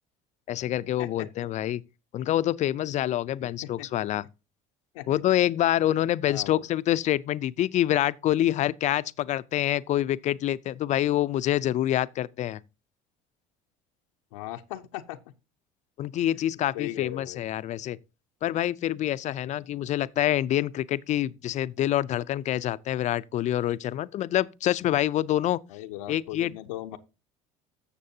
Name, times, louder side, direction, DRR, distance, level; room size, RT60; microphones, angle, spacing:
voice 1, 0.5-1.8 2.1-4.2 5.1-12.6 16.0-18.0 18.4-25.6 26.1-26.5, left 12 dB, 45° left, 0.5 m, -26 dB
voice 2, 3.4-3.9 4.9-5.2 6.2-6.6 14.3-15.2 16.3-16.4 16.7-17.5 25.7-27.0, left 14 dB, 90° left, 0.7 m, -38 dB
14.0 x 6.7 x 2.8 m
supercardioid pair, 90°, 16 cm